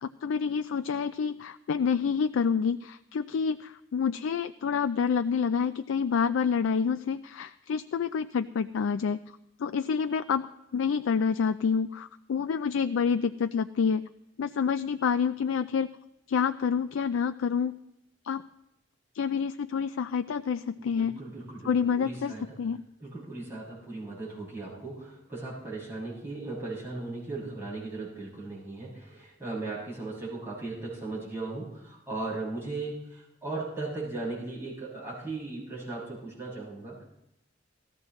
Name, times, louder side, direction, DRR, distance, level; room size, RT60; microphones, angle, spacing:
voice 1, 0.0-9.2 9.6-10.5 10.7-14.1 14.4-15.9 16.3-17.8 18.2-18.4 19.1-21.1 21.6-22.3 22.6-22.8, left 6 dB, 85° left, 10 dB, 0.4 m, -28 dB
voice 2, 20.8-22.6 23.0-37.0, right 3 dB, 15° right, -8 dB, 6.7 m, -37 dB
18.0 x 14.5 x 3.2 m, 0.86 s
head